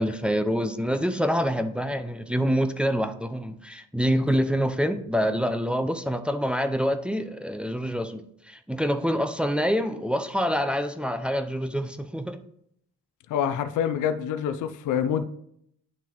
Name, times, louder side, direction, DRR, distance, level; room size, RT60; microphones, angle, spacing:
voice 1, 0.0-12.4, equal, 5° right, 8 dB, 0.5 m, -26 dB
voice 2, 13.3-15.2, left 8 dB, 80° left, 10 dB, 0.6 m, -26 dB
10.0 x 3.5 x 3.0 m, 0.71 s
cardioid pair, 90°, 30 cm